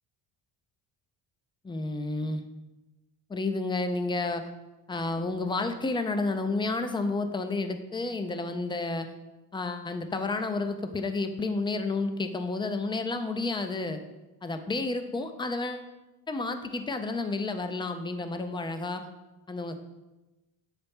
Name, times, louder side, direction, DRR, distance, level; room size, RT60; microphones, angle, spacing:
voice 1, 1.6-2.4 3.3-4.5 4.9-9.1 9.5-14.0 14.4-15.9 16.3-19.0 19.5-19.8, left 3 dB, 10° left, 8 dB, 0.3 m, -31 dB
6.7 x 4.2 x 3.5 m, 1.1 s
cardioid pair, 90°, 48 cm